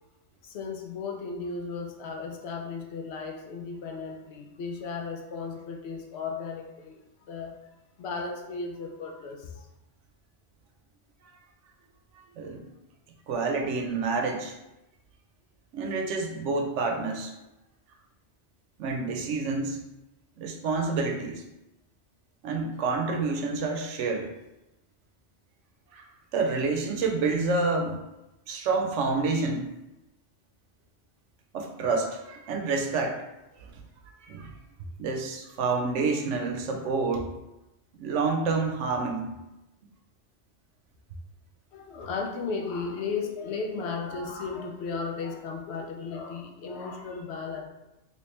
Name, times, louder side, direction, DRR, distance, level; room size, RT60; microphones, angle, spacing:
voice 1, 0.4-7.5 8.0-9.7 41.7-47.6, left 4 dB, 70° left, 2 dB, 0.8 m, -35 dB
voice 2, 12.4-12.7 13.3-14.5 15.7-17.3 18.8-19.8 20.4-21.4 22.4-24.3 25.9-26.0 26.3-28.0 28.5-29.7 31.5-33.2 34.2-34.5 35.0-37.3 38.0-39.3, right 4 dB, 85° right, 3 dB, 0.9 m, -28 dB
3.2 x 2.9 x 3.1 m, 0.94 s
omnidirectional pair, 1.2 m